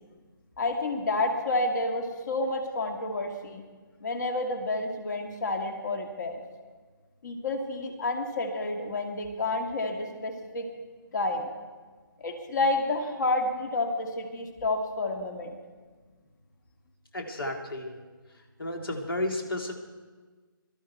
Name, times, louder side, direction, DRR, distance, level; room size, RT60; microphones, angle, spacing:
voice 1, 0.6-3.6 4.0-6.4 7.2-10.7 11.1-11.5 12.2-15.6, left 2 dB, 55° left, 4 dB, 2.2 m, -29 dB
voice 2, 17.1-18.0 18.6-19.7, left 1 dB, 80° left, 3 dB, 2.2 m, -32 dB
23.0 x 13.0 x 4.6 m, 1.4 s
figure-of-eight pair, 150°, 12 cm